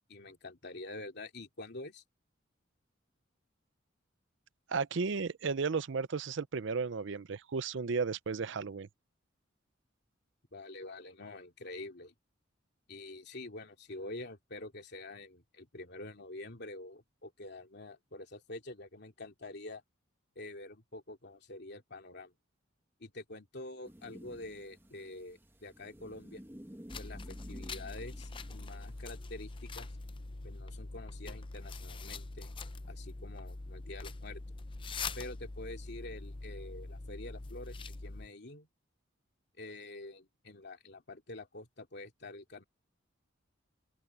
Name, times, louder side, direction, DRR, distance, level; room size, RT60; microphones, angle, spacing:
voice 1, 0.0-2.0 10.5-12.1 12.9-19.8 20.3-22.3 23.0-26.4 26.9-29.9 30.4-32.5 32.9-34.4 35.1-38.7 39.6-42.6, left 2 dB, 60° left, 2.8 m, -47 dB
voice 2, 4.7-8.9, right 5 dB, 65° right, 0.6 m, -34 dB
sound 1, 23.8-29.0, equal, 10° right, 1.2 m, -53 dB
sound 2, 26.9-38.3, left 3 dB, 25° left, 0.6 m, -43 dB
open air
head